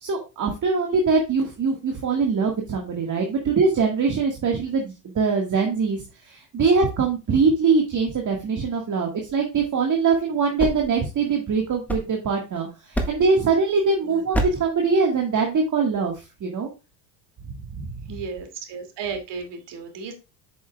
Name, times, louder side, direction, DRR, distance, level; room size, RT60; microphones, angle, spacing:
voice 1, 0.0-16.7 17.4-18.1, right 4 dB, 40° right, 1 dB, 1.8 m, -23 dB
sound 1, 10.3-12.5 12.9-13.4 14.3-14.8, right 1 dB, 5° left, 1.5 m, -29 dB
voice 2, 18.1-20.1, right 5 dB, 55° right, 6 dB, 2.5 m, -34 dB
8.2 x 6.3 x 2.3 m, 0.28 s
supercardioid pair, 100°, 49 cm